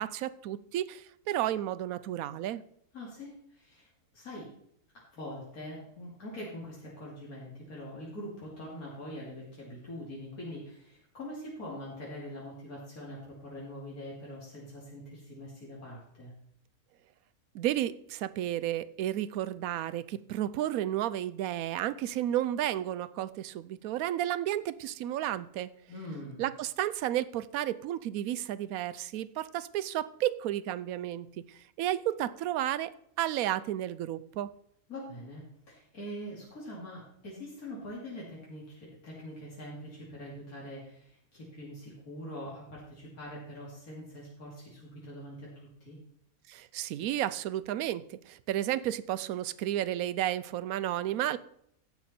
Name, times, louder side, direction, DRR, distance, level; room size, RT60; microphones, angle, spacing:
voice 1, 0.0-2.6 17.5-25.7 26.4-34.5 46.5-51.4, right 12 dB, 75° right, 15 dB, 1.0 m, -32 dB
voice 2, 2.9-4.5 4.9-16.3 25.9-26.4 34.9-46.0, equal, 75° left, -5 dB, 3.1 m, -43 dB
15.5 x 5.8 x 4.3 m, 0.70 s
omnidirectional pair, 1.5 m